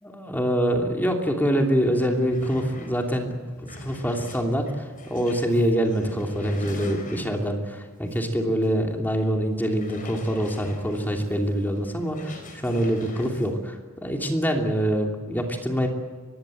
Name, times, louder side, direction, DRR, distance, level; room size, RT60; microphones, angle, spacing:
voice 1, 0.0-3.4 3.8-15.9, equal, 10° left, 2 dB, 2.8 m, -25 dB
sound 1, 1.5-1.6 1.9-7.6 8.1-8.2 8.6-8.7 9.7-13.5, left 1 dB, 40° left, 4.8 m, -43 dB
24.0 x 20.5 x 7.9 m, 1.5 s
head